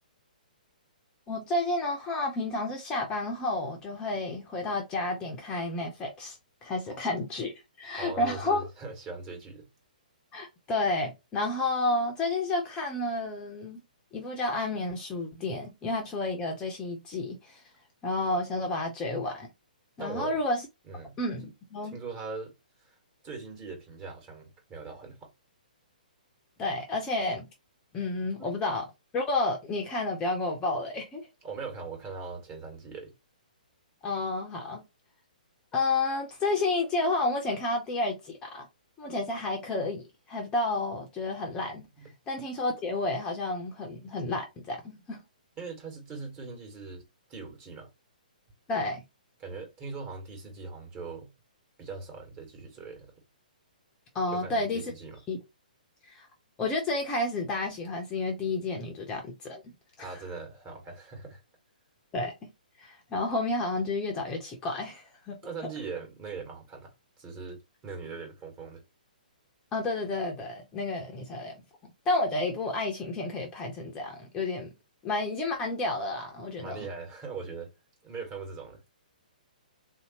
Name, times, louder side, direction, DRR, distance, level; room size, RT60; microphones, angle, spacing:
voice 1, 1.3-7.5 7.8-8.6 10.3-13.8 14.1-17.6 18.0-19.5 20.0-20.6 21.2-22.0 26.6-27.5 27.9-28.9 29.1-31.3 34.0-34.8 35.7-38.7 39.0-41.9 42.3-45.2 48.7-49.0 54.1-54.8 55.3-55.4 56.0-56.3 56.6-60.2 62.1-62.3 62.8-65.4 69.7-71.5 72.1-74.7 75.0-76.9, left 2 dB, 15° left, 0.7 m, -31 dB
voice 2, 8.0-9.7 20.0-20.4 20.8-21.2 21.9-22.5 22.8-23.0 23.2-25.3 28.4-28.5 31.4-33.1 42.0-42.1 45.6-47.0 47.3-47.9 49.4-51.3 51.8-53.1 54.3-55.2 60.0-61.4 65.4-68.8 76.6-77.7 78.0-78.8, right 4 dB, 25° right, 1.5 m, -41 dB
3.6 x 2.8 x 2.9 m
figure-of-eight pair, 125°, 5 cm